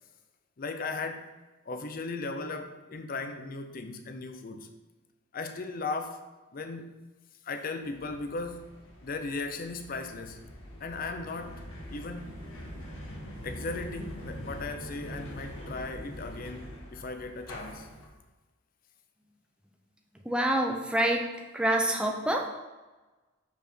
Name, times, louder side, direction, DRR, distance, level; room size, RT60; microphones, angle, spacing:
voice 1, 0.6-1.3 1.7-4.7 5.3-7.1 7.4-8.7 9.0-10.5 10.8-11.6 11.9-12.3 13.4-17.9, left 3 dB, 45° left, 7 dB, 0.5 m, -37 dB
sound 1, 7.8-18.1, equal, 80° left, 1.5 m, -44 dB
voice 2, 20.2-21.3 21.5-22.5, right 1 dB, 5° right, 1 dB, 0.6 m, -26 dB
5.4 x 4.5 x 4.3 m, 1.2 s
head